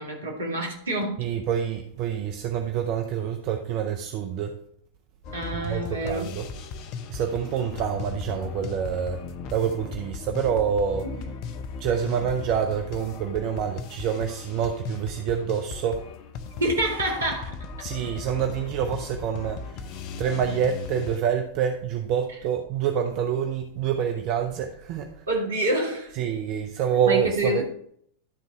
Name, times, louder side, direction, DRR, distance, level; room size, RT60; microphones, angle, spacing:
voice 1, 0.0-1.3 5.3-6.3 11.0-11.1 16.6-17.7 25.3-26.1 27.0-27.6, right 1 dB, 70° right, 2.0 m, -27 dB
voice 2, 1.2-4.6 5.7-6.5 7.1-9.2 9.5-11.2 11.8-16.1 17.8-25.2 26.2-27.6, right 8 dB, 40° right, 0.6 m, -27 dB
sound 1, 5.2-21.2, left 5 dB, 40° left, 0.6 m, -37 dB
11.5 x 4.0 x 4.6 m
figure-of-eight pair, 90°, 0 cm